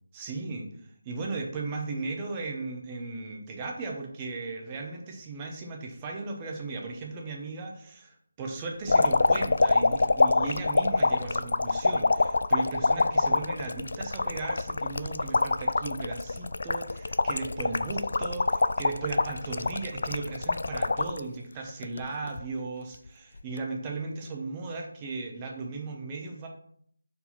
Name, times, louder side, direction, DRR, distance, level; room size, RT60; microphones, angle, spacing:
voice 1, 0.1-26.5, right 3 dB, 20° right, 0 dB, 1.0 m, -36 dB
sound 1, 8.9-21.2 21.7-22.4 23.4-23.6, left 3 dB, 60° left, 0.3 m, -25 dB
4.6 x 4.0 x 5.7 m, 0.65 s
figure-of-eight pair, 160°, 0 cm